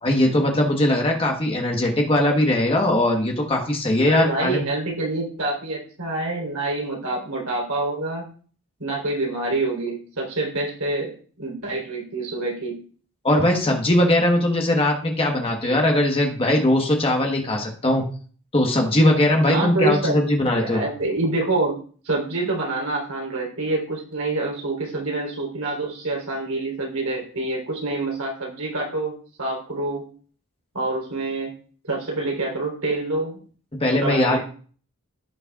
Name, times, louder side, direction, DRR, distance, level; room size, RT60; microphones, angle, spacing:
voice 1, 0.0-4.6 13.2-18.0 18.5-20.8 33.8-34.4, left 1 dB, 25° left, 1 dB, 1.3 m, -20 dB
voice 2, 4.1-8.3 8.8-11.1 11.4-12.8 19.4-21.8 22.0-30.0 30.7-31.5 31.9-33.4 34.0-34.4, right 2 dB, 75° right, -2 dB, 3.9 m, -26 dB
16.0 x 6.5 x 2.4 m, 0.43 s
head